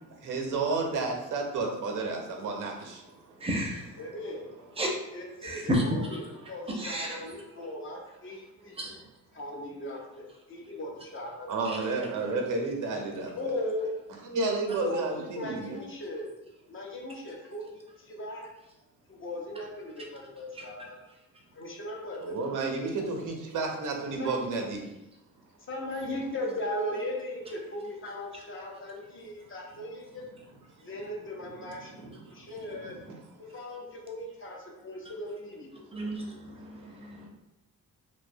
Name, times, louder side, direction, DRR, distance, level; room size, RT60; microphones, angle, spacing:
voice 1, 0.1-3.4 11.5-13.3 14.2-15.8 22.2-24.8 31.6-32.4 32.9-33.1 36.6-37.1, right 3 dB, 70° right, 2 dB, 0.6 m, -32 dB
voice 2, 3.4-3.8 4.8-4.9 5.4-6.0 6.8-7.1 8.8-8.9 35.9-37.3, equal, 20° right, 0 dB, 0.5 m, -31 dB
voice 3, 4.0-4.5 5.1-8.8 9.3-11.9 13.4-13.9 14.8-16.3 16.7-18.5 19.1-21.0 21.5-22.6 23.0-23.3 24.2-24.4 25.7-30.2 30.8-32.9 33.4-35.7, left 1 dB, 40° left, -1 dB, 0.6 m, -38 dB
2.6 x 2.1 x 2.5 m, 0.91 s
cardioid pair, 95°, 33 cm